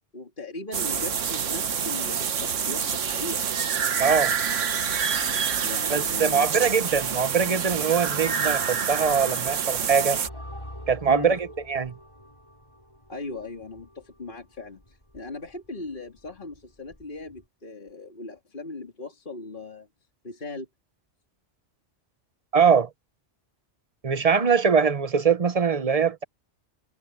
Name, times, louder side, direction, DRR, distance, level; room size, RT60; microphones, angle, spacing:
voice 1, 0.1-3.5 5.6-6.7 11.1-11.4 13.1-19.9 20.2-20.7, left 3 dB, 45° left, 2.7 m, -38 dB
sound 1, 0.7-10.3, right 7 dB, 80° right, 1.5 m, -27 dB
voice 2, 4.0-4.3 5.9-10.2 10.9-11.4 11.7-11.9 22.5-22.9 24.0-26.2, right 6 dB, 35° right, 0.8 m, -22 dB
sound 2, 10.2-17.4, equal, 25° left, 7.3 m, -46 dB
omnidirectional pair, 1.3 m